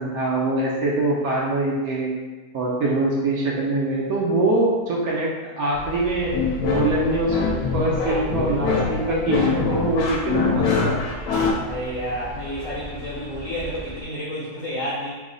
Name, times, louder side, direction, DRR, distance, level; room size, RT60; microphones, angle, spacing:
voice 1, 0.0-2.1 2.5-6.3 6.6-7.4 7.7-11.1, right 2 dB, 75° right, -4 dB, 1.0 m, -23 dB
sound 1, 5.7-14.0, right 1 dB, 45° left, 0.7 m, -37 dB
sound 2, 6.3-11.5, left 5 dB, 90° left, 1.1 m, -23 dB
voice 2, 11.5-15.1, equal, 65° left, -7 dB, 1.0 m, -30 dB
3.0 x 2.1 x 3.7 m, 1.3 s
omnidirectional pair, 1.6 m